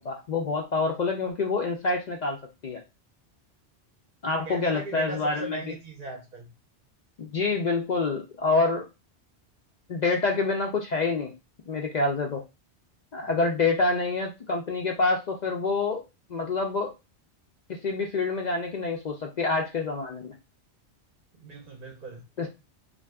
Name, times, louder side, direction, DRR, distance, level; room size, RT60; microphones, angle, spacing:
voice 1, 0.0-2.8 4.2-5.6 7.2-8.8 9.9-11.3 11.7-12.4 13.1-16.0 16.3-16.9 17.7-20.3 22.4-22.5, left 3 dB, 60° left, 0.5 m, -27 dB
voice 2, 4.5-6.5 21.4-22.2, right 3 dB, 50° right, 0.7 m, -38 dB
2.6 x 2.4 x 3.3 m
omnidirectional pair, 1.2 m